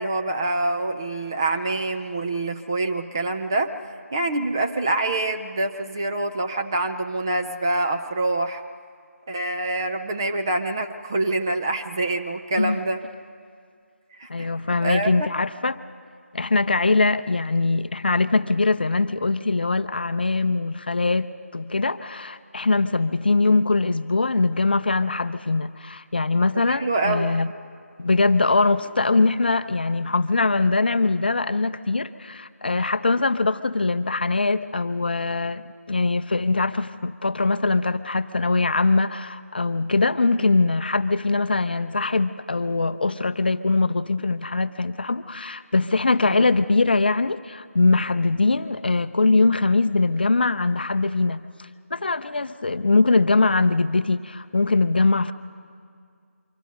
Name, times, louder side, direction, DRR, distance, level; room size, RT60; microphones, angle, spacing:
voice 1, 0.0-3.7 4.1-8.6 9.3-13.0 14.2-14.5 14.8-15.3 26.7-27.3 40.4-40.5 46.2-46.4, right 2 dB, 15° right, 5 dB, 0.5 m, -26 dB
voice 2, 14.3-15.8 16.3-27.5 28.0-51.5 51.9-55.3, left 3 dB, 40° left, 12 dB, 0.6 m, -22 dB
25.0 x 24.5 x 5.3 m, 2.2 s
figure-of-eight pair, 165°, 8 cm